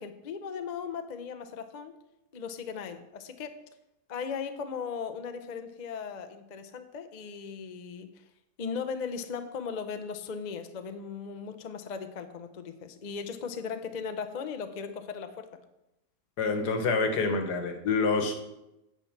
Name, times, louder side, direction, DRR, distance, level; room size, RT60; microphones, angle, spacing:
voice 1, 0.0-2.0 2.3-3.6 4.1-8.2 8.6-15.5, left 6 dB, 40° left, 7 dB, 0.6 m, -37 dB
voice 2, 16.4-18.4, left 4 dB, 80° left, 6 dB, 1.8 m, -27 dB
8.8 x 5.8 x 7.2 m, 0.91 s
omnidirectional pair, 1.7 m